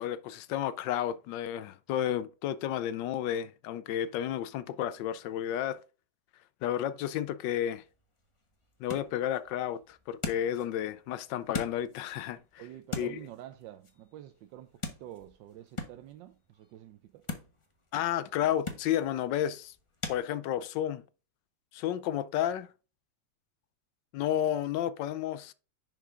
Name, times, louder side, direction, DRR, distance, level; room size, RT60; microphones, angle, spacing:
voice 1, 0.0-5.8 6.6-7.8 8.8-12.4 13.0-13.2 17.9-19.7 20.1-21.0 21.7-22.7 24.1-25.5, left 11 dB, 80° left, 1.3 m, -32 dB
sound 1, 7.8-20.2, left 3 dB, 20° left, 0.9 m, -44 dB
voice 2, 12.6-17.2, right 12 dB, 90° right, 1.3 m, -48 dB
10.5 x 4.7 x 3.7 m
omnidirectional pair, 1.9 m